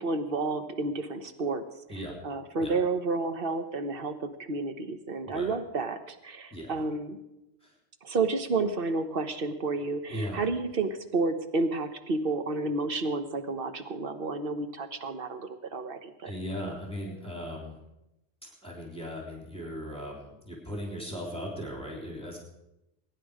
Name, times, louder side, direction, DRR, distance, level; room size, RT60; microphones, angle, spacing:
voice 1, 0.0-1.6 1.9-2.0 2.2-7.2 8.0-16.3, right 3 dB, 60° right, 8 dB, 1.3 m, -31 dB
voice 2, 6.5-6.9 7.6-7.7 10.1-10.5 16.2-17.8 18.4-22.4, equal, 5° left, -2 dB, 3.4 m, -38 dB
22.0 x 10.0 x 5.0 m, 0.90 s
omnidirectional pair, 1.1 m